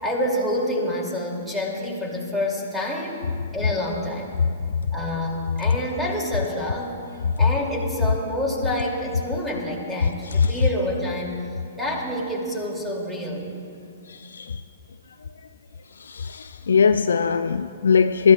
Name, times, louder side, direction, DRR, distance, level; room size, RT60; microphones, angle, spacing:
voice 1, 0.0-3.2 3.5-4.3 4.9-7.0 7.4-13.5, left 1 dB, 5° right, -2 dB, 2.7 m, -27 dB
voice 2, 14.1-14.6 16.0-18.3, left 6 dB, 70° left, 10 dB, 0.3 m, -20 dB
22.5 x 14.0 x 2.4 m, 2.4 s
figure-of-eight pair, 115°, 0 cm